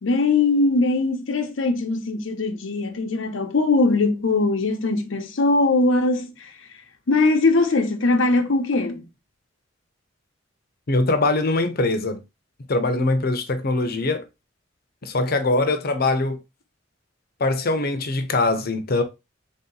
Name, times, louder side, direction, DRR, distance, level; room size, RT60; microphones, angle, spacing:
voice 1, 0.0-6.5 7.1-9.0, left 3 dB, 90° left, 0.7 m, -21 dB
voice 2, 10.9-12.2 12.7-14.2 15.0-16.4 17.4-19.0, left 2 dB, 50° left, 0.7 m, -22 dB
3.7 x 2.8 x 3.8 m
head